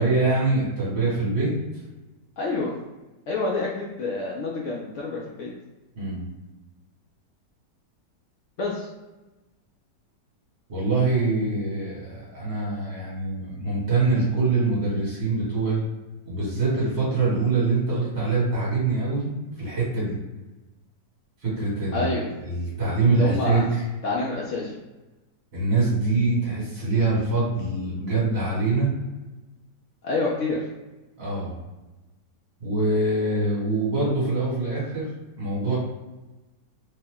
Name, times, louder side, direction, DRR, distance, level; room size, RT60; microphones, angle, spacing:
voice 1, 0.0-1.5 5.9-6.3 10.7-15.8 16.2-19.3 19.6-20.1 21.4-22.1 22.4-23.8 25.5-28.9 31.2-31.6 32.6-35.0 35.4-35.8, right 3 dB, 40° right, -5 dB, 1.4 m, -24 dB
voice 2, 2.4-2.7 3.3-5.5 8.6-8.9 21.9-22.3 23.1-23.7 24.0-24.8 30.0-30.6, left 3 dB, 75° left, -4 dB, 0.6 m, -27 dB
3.2 x 2.1 x 3.5 m, 1.1 s
omnidirectional pair, 1.9 m